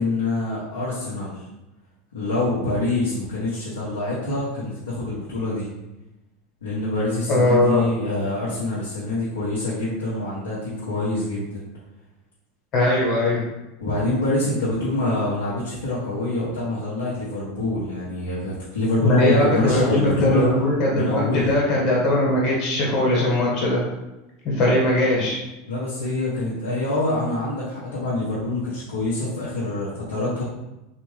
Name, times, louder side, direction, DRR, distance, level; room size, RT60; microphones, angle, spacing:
voice 1, 0.0-1.4 2.1-5.7 6.6-11.6 13.8-20.5 20.9-21.5 25.7-30.4, left 2 dB, 80° left, -9 dB, 0.9 m, -25 dB
voice 2, 7.3-7.8 12.7-13.4 19.0-23.8 24.4-25.4, left 1 dB, 45° left, -4 dB, 1.4 m, -20 dB
3.4 x 2.5 x 3.2 m, 0.98 s
hypercardioid pair, 85°, 0 cm